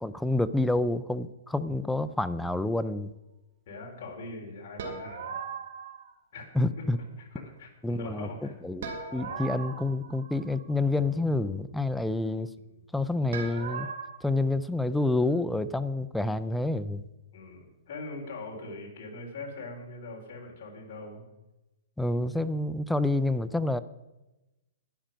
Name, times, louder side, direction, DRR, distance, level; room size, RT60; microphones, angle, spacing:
voice 1, 0.0-3.1 6.5-7.0 7.8-12.5 12.9-13.9 14.2-17.0 22.0-23.8, left 2 dB, ahead, 12 dB, 0.3 m, -28 dB
voice 2, 3.7-5.3 6.3-6.8 7.4-8.5 9.1-9.4 12.7-12.9 17.3-21.2, left 2 dB, 40° left, -1 dB, 3.4 m, -42 dB
sound 1, 4.8-6.1 8.8-10.7 13.3-14.1, right 5 dB, 60° right, 2.4 m, -38 dB
11.5 x 10.0 x 5.1 m, 1.0 s
hypercardioid pair, 170°, 0 cm